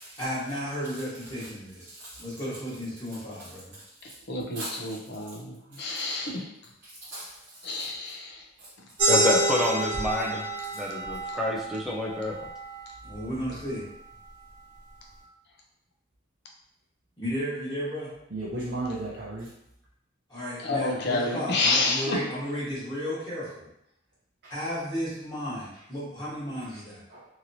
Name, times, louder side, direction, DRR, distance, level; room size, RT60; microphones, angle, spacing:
voice 1, 0.2-3.8 13.0-13.9 17.2-18.1 20.3-23.7 24.5-27.0, equal, 20° left, -10 dB, 1.3 m, -34 dB
voice 2, 1.9-2.2 4.1-4.2 4.5-5.0 5.7-5.8 6.8-7.3 7.8-7.9 8.6-8.7 18.3-19.4 24.4-24.5 27.1-27.3, right 2 dB, 60° right, -6 dB, 0.6 m, -36 dB
voice 3, 4.3-6.5 7.6-8.4 20.6-22.2, left 3 dB, 60° left, -1 dB, 0.6 m, -29 dB
sound 1, 9.0-14.2, right 1 dB, 25° right, 0.9 m, -29 dB
voice 4, 9.1-10.5 10.7-12.3, left 1 dB, ahead, -2 dB, 0.3 m, -28 dB
2.9 x 2.8 x 2.6 m, 0.80 s
head